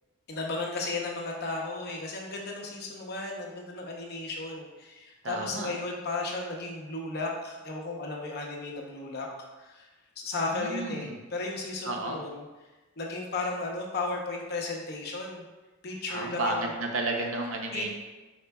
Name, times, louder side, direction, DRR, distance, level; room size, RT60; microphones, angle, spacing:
voice 1, 0.3-9.3 9.6-9.9 10.2-12.4 13.0-15.4 15.8-16.7 17.7-17.9, left 3 dB, 50° left, -1 dB, 0.8 m, -34 dB
voice 2, 5.2-5.7 10.5-11.2 11.8-12.3 16.1-17.9, right 2 dB, 60° right, 2 dB, 0.7 m, -32 dB
5.2 x 4.4 x 2.3 m, 1.2 s
head